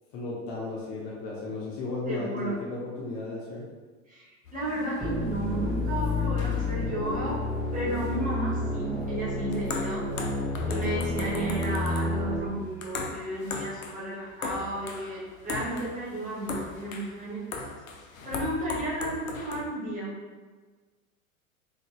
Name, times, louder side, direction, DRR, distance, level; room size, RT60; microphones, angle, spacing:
voice 1, 0.1-3.6, left 3 dB, 40° left, -4 dB, 0.8 m, -34 dB
voice 2, 2.1-2.5 4.1-7.4 7.7-10.0 10.7-17.6 18.2-20.2, right 1 dB, 20° right, -7 dB, 1.4 m, -33 dB
sound 1, 4.5-19.6, left 4 dB, 70° left, 0.7 m, -39 dB
sound 2, 5.0-12.4, left 2 dB, 5° left, 0.6 m, -30 dB
3.8 x 3.7 x 2.2 m, 1.4 s
figure-of-eight pair, 95°, 42 cm